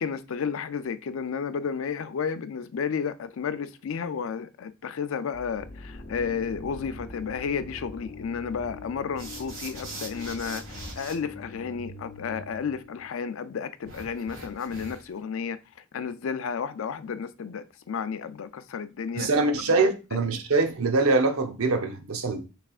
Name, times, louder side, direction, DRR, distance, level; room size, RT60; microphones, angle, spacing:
voice 1, 0.0-15.6 15.9-19.3, left 6 dB, 65° left, 0.4 m, -32 dB
sound 1, 5.3-13.2, left 2 dB, 35° left, 0.7 m, -44 dB
sound 2, 9.2-11.2 13.8-15.2, right 2 dB, 60° right, 2.2 m, -41 dB
voice 2, 19.1-22.4, right 3 dB, 80° right, 0.8 m, -24 dB
5.8 x 3.3 x 2.4 m
head